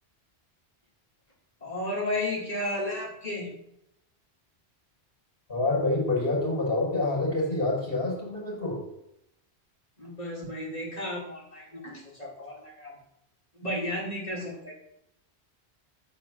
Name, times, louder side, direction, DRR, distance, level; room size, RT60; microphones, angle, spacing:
voice 1, 1.6-3.5 10.0-12.9 13.5-14.8, left 1 dB, 35° left, -4 dB, 4.8 m, -33 dB
voice 2, 5.5-8.8, left 2 dB, 60° left, -4 dB, 6.2 m, -27 dB
14.0 x 6.2 x 7.7 m, 0.79 s
omnidirectional pair, 1.1 m